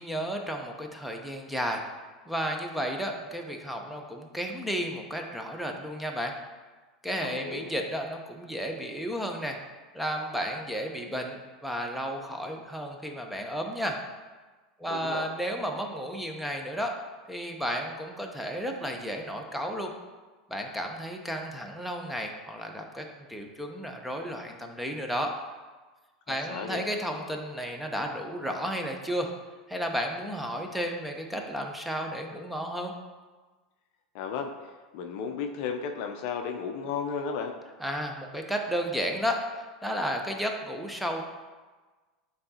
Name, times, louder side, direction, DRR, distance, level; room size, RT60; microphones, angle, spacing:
voice 1, 0.0-1.8 2.3-6.3 7.0-9.6 9.9-14.0 14.8-16.9 17.3-19.9 20.5-25.3 26.3-29.3 29.7-32.9 37.8-41.2, equal, ahead, 2 dB, 0.8 m, -33 dB
voice 2, 7.2-7.7 14.9-15.3 26.3-26.8 34.1-37.5, left 6 dB, 50° left, 4 dB, 0.6 m, -34 dB
8.6 x 4.0 x 2.8 m, 1.3 s
figure-of-eight pair, 85°, 3 cm